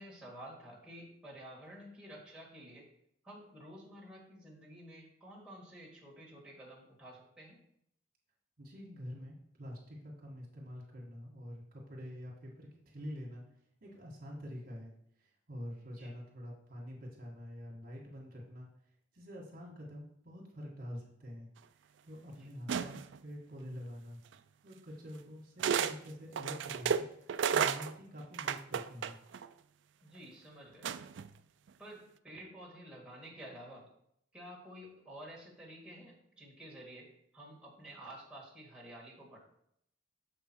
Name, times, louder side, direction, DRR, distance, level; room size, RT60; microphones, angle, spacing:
voice 1, 0.0-2.9 3.2-7.6 16.0-16.2 22.4-22.5 30.0-30.9 31.8-33.9 34.3-39.4, right 1 dB, 5° right, -4 dB, 2.0 m, -51 dB
voice 2, 8.6-13.4 13.8-14.9 15.2-18.7 19.1-21.5 22.0-24.2 24.6-27.0 27.5-29.2, equal, 50° right, -2 dB, 1.7 m, -46 dB
sound 1, 22.7-23.2 24.3-24.4 25.6-26.0 26.3-29.5 30.8-31.3, right 7 dB, 75° right, 0.4 m, -32 dB
7.0 x 5.4 x 4.5 m, 0.72 s
head